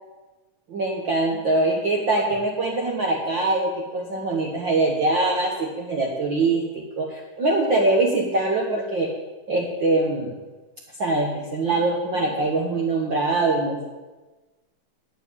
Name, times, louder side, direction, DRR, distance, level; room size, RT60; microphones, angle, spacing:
voice 1, 0.7-9.1 9.5-10.4 11.0-13.8, right 2 dB, 85° right, -1 dB, 1.0 m, -23 dB
10.0 x 6.9 x 8.7 m, 1.2 s
omnidirectional pair, 4.1 m